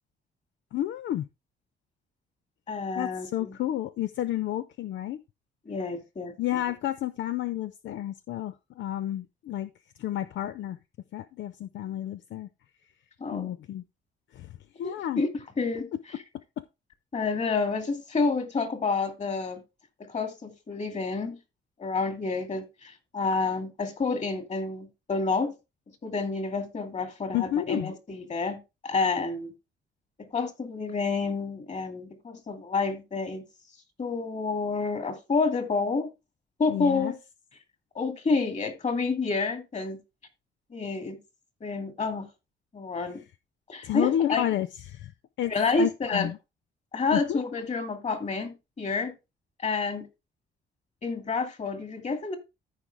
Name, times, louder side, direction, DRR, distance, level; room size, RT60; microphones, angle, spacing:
voice 1, 0.7-1.3 2.9-5.2 6.4-9.7 10.0-10.8 11.1-12.5 13.3-13.8 14.3-15.2 16.6-16.7 27.3-27.9 36.7-37.1 43.1-43.2 43.8-45.5 45.8-46.4 47.1-47.4, left 12 dB, 70° left, 0.5 m, -31 dB
voice 2, 2.7-3.5 5.7-6.3 13.2-13.5 14.8-15.3 15.6-15.9 17.1-19.6 20.1-21.4 21.8-25.5 26.0-29.5 30.3-33.4 34.0-36.1 36.6-37.1 37.9-40.0 40.7-41.2 41.6-42.3 42.7-43.2 43.7-44.5 45.5-46.3 46.9-49.1 49.6-50.1 51.0-52.4, left 4 dB, 35° left, 2.4 m, -29 dB
14.0 x 4.9 x 3.5 m
cardioid pair, 90°, 20 cm